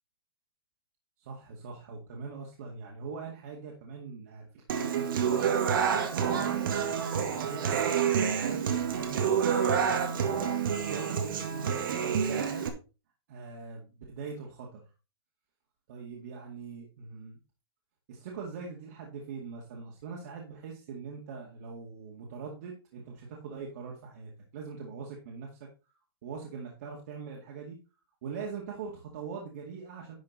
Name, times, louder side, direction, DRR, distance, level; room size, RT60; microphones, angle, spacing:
voice 1, 1.2-5.5 6.0-9.8 10.2-12.7 13.3-14.8 15.9-17.4 18.1-25.7 26.2-27.8 28.2-30.1, right 5 dB, 40° right, -2 dB, 2.2 m, -42 dB
Human voice / Acoustic guitar, 4.7-12.7, right 7 dB, 60° right, 1.8 m, -28 dB
11.0 x 5.7 x 4.1 m, 0.31 s
hypercardioid pair, 175°, 13 cm